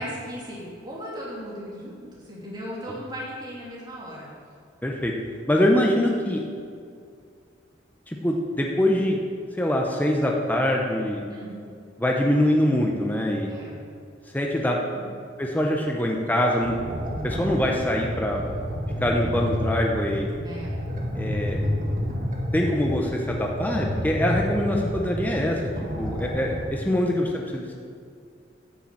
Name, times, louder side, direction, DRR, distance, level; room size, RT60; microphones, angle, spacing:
voice 1, 0.0-4.3 11.3-11.6 13.4-13.8 14.9-15.1 20.4-20.8 26.8-27.1, equal, 25° right, -6 dB, 3.0 m, -37 dB
voice 2, 4.8-5.1 5.5-6.4 8.1-9.2 9.6-11.2 12.0-13.5 14.3-14.8 15.4-16.8 17.2-18.5 19.0-20.3 21.1-21.6 22.5-25.6 26.0-27.7, left 1 dB, 10° left, 0 dB, 0.9 m, -24 dB
sound 1, 16.6-26.6, equal, 45° right, 1.9 m, -30 dB
11.5 x 6.8 x 7.6 m, 2.3 s
head